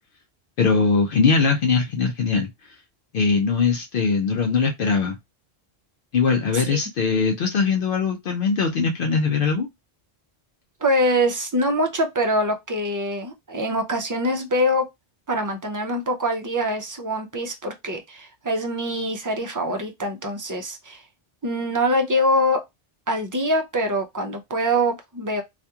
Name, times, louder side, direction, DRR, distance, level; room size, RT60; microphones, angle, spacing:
voice 1, 0.6-2.5 3.1-5.2 6.1-9.7, left 5 dB, 65° left, 0.7 m, -21 dB
voice 2, 10.8-14.9 15.3-21.0 21.4-22.6 23.1-25.4, equal, 35° right, 0.3 m, -24 dB
2.8 x 2.4 x 2.2 m
omnidirectional pair, 1.0 m